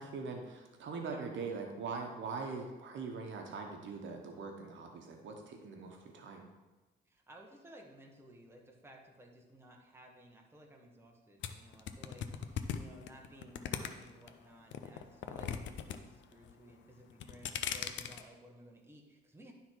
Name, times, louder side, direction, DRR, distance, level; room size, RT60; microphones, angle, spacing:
voice 1, 0.0-6.5, right 4 dB, 70° right, 2 dB, 1.2 m, -42 dB
voice 2, 7.1-19.5, equal, 10° right, 0 dB, 1.4 m, -57 dB
sound 1, 11.4-14.3 14.7-16.0 16.2-16.7 17.1-18.2, left 9 dB, 70° left, 0.6 m, -38 dB
11.5 x 3.9 x 4.6 m, 1.2 s
cardioid pair, 90°, 20 cm